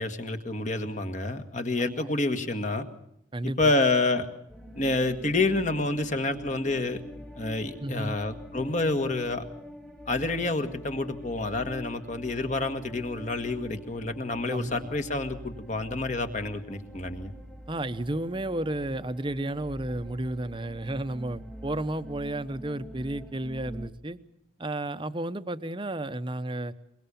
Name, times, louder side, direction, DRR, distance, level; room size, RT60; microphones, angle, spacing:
voice 1, 0.0-2.9 3.4-4.3 4.7-7.0 7.4-9.4 10.1-17.3, left 2 dB, 40° left, 7 dB, 1.7 m, -28 dB
voice 2, 3.3-3.7 7.8-8.2 14.5-14.9 17.7-24.2 24.6-26.7, right 1 dB, 25° right, 12 dB, 0.9 m, -32 dB
sound 1, 4.5-23.9, equal, 5° left, 1.7 m, -44 dB
23.0 x 22.0 x 7.1 m, 0.78 s
head